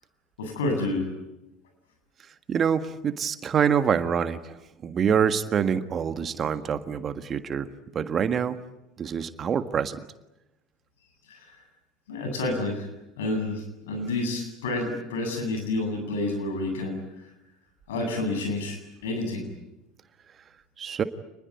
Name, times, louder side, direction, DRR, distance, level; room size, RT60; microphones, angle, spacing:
voice 1, 0.4-1.1 11.3-11.6 12.1-12.9 13.2-17.2 17.9-19.5, left 2 dB, 75° left, 5 dB, 8.0 m, -29 dB
voice 2, 2.5-4.6 4.8-8.6 9.0-10.0 20.8-21.0, right 7 dB, 35° right, 10 dB, 1.7 m, -26 dB
27.5 x 21.0 x 9.5 m, 0.94 s
hypercardioid pair, 75°, 0 cm